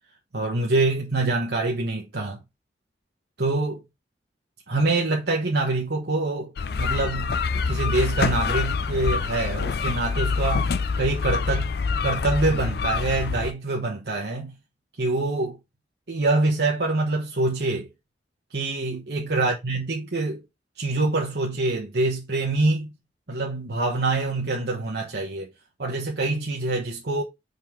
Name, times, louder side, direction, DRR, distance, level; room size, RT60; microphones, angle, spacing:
voice 1, 0.3-2.4 3.4-3.8 4.7-11.7 12.0-14.5 15.0-15.6 16.1-17.9 18.5-20.4 20.8-22.9 23.3-25.5 25.8-27.2, right 2 dB, 65° right, 1.1 m, -25 dB
sound 1, 6.6-13.5, left 5 dB, 60° left, 0.4 m, -26 dB
5.4 x 3.9 x 4.6 m
head